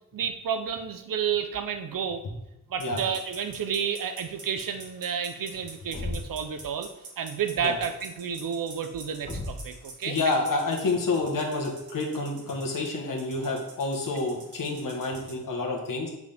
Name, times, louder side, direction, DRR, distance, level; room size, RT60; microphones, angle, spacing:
voice 1, 0.1-2.2 2.7-6.9 7.2-10.3, right 7 dB, 90° right, 8 dB, 0.8 m, -31 dB
sound 1, 2.8-15.3, right 3 dB, 65° right, 1.9 m, -47 dB
Thump thud, 5.9-6.5 9.2-9.8, left 2 dB, 25° left, 1.4 m, -35 dB
voice 2, 10.0-16.1, left 3 dB, 75° left, 1 dB, 1.5 m, -28 dB
7.7 x 6.2 x 3.5 m, 0.89 s
wide cardioid pair, 135°, 33 cm